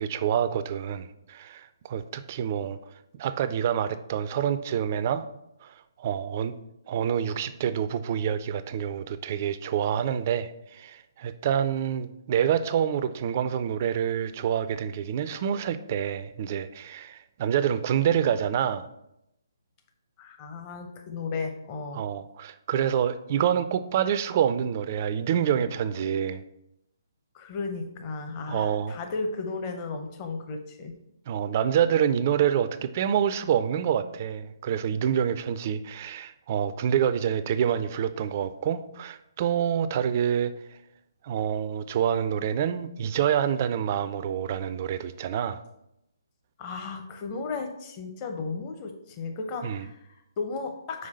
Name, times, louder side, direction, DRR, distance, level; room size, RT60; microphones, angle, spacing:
voice 1, 0.0-2.8 3.1-5.3 5.6-6.6 6.9-18.9 21.9-26.4 28.5-29.0 31.3-40.5 41.2-45.6 49.6-49.8, right 9 dB, 35° right, 13 dB, 0.3 m, -27 dB
voice 2, 20.2-22.0 27.3-30.9 46.6-51.1, left 4 dB, 25° left, 4 dB, 0.7 m, -34 dB
5.4 x 4.7 x 4.1 m, 0.83 s
figure-of-eight pair, 135°, 2 cm